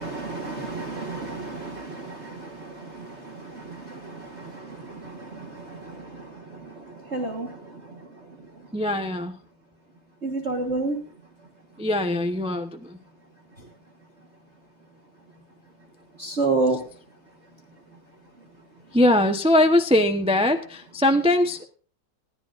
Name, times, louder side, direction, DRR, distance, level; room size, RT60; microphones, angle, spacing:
voice 1, 0.0-2.5 2.9-4.5 5.2-5.5 7.1-7.5 10.2-11.0 16.2-16.8, right 3 dB, 40° right, 2 dB, 1.8 m, -29 dB
voice 2, 8.7-9.3 11.8-12.8 18.9-21.6, left 1 dB, 5° right, 5 dB, 0.7 m, -21 dB
20.5 x 14.0 x 2.6 m, 0.41 s
omnidirectional pair, 2.0 m